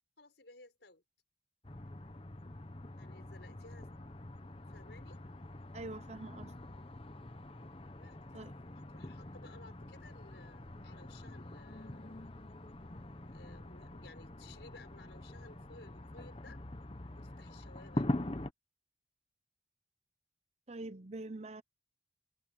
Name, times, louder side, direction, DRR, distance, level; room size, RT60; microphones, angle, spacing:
voice 1, 0.2-1.0 3.0-3.9 4.7-5.2 8.0-8.2 8.7-12.3 12.9-13.0 13.3-16.6 17.1-18.4, left 3 dB, 85° left, 5.4 m, -57 dB
sound 1, 1.6-18.5, left 1 dB, 30° left, 1.1 m, -44 dB
voice 2, 5.7-6.5 8.3-8.5 20.7-21.6, right 2 dB, 40° right, 0.8 m, -44 dB
head